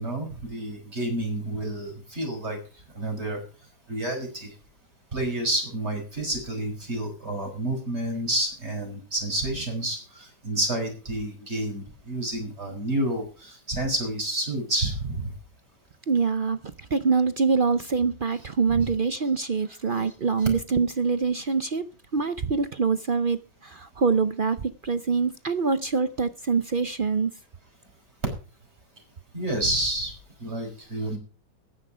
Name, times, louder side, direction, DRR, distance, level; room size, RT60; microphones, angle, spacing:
voice 1, 0.0-2.6 2.9-3.4 3.9-4.5 5.1-15.3 18.7-18.9 20.0-20.1 29.3-30.1 30.4-31.2, right 1 dB, 35° right, 2 dB, 5.7 m, -29 dB
voice 2, 16.1-21.8 22.1-27.3, right 5 dB, 65° right, 12 dB, 0.5 m, -25 dB
14.0 x 10.5 x 4.9 m, 0.37 s
omnidirectional pair, 1.9 m